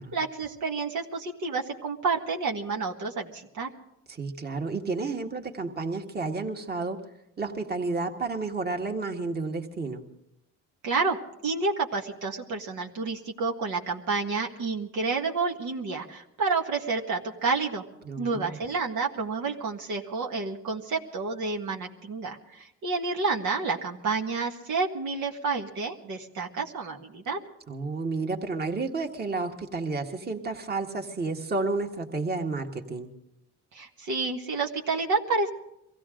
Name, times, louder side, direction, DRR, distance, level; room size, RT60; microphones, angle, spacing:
voice 1, 0.1-3.7 10.8-11.2 11.4-17.8 18.2-27.4 33.7-35.5, right 4 dB, 75° right, 1 dB, 1.7 m, -29 dB
voice 2, 4.1-7.0 7.4-10.0 18.0-18.6 27.7-33.1, right 3 dB, 30° right, 3 dB, 1.8 m, -31 dB
23.0 x 16.0 x 3.8 m, 0.83 s
cardioid pair, 90°, 30 cm